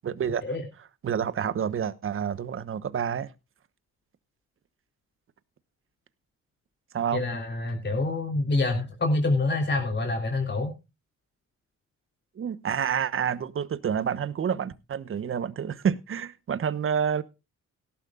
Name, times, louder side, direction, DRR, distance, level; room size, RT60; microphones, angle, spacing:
voice 1, 0.0-0.4 1.0-3.3 6.9-7.2 12.4-17.2, right 8 dB, 45° right, 1.1 m, -28 dB
voice 2, 7.1-10.7, left 2 dB, 35° left, 3.5 m, -26 dB
17.5 x 12.0 x 2.4 m
cardioid pair, 90°, 30 cm